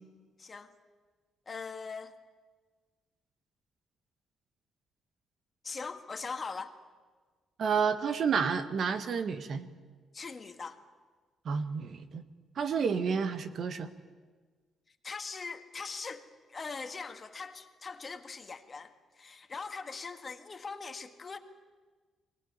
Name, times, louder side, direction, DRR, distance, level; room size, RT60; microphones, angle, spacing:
voice 1, 0.4-0.7 1.5-2.1 5.6-6.8 10.1-10.8 15.0-21.4, left 4 dB, 35° left, 7 dB, 1.9 m, -41 dB
voice 2, 7.6-9.7 11.5-12.2 12.6-13.9, right 6 dB, 55° right, 10 dB, 1.6 m, -30 dB
23.0 x 19.0 x 9.7 m, 1.4 s
cardioid pair, 90°, 0 cm